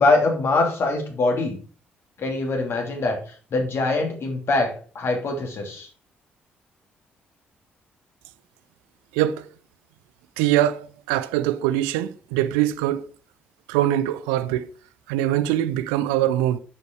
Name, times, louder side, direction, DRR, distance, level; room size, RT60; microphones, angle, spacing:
voice 1, 0.0-1.6 2.2-3.2 3.5-5.9, left 2 dB, 50° left, 2.9 m, -23 dB
voice 2, 9.1-9.5 10.4-13.0 13.7-14.7 15.1-16.6, right 13 dB, 70° right, 0.5 m, -23 dB
9.2 x 6.8 x 4.6 m
figure-of-eight pair, 40°, 6 cm